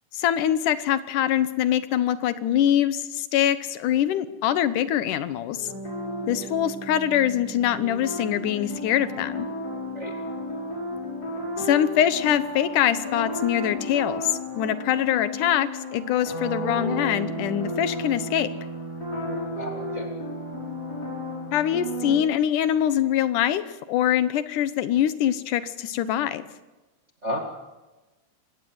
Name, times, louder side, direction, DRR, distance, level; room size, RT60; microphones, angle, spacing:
voice 1, 0.1-5.7 6.3-9.5 11.6-18.5 21.5-26.5, left 11 dB, 85° left, 13 dB, 2.6 m, -24 dB
sound 1, 5.5-22.2, equal, 30° left, 6.6 m, -33 dB
voice 2, 19.2-20.1 27.2-27.4, equal, 25° right, 2 dB, 2.0 m, -33 dB
24.0 x 18.5 x 7.9 m, 1.1 s
omnidirectional pair, 3.6 m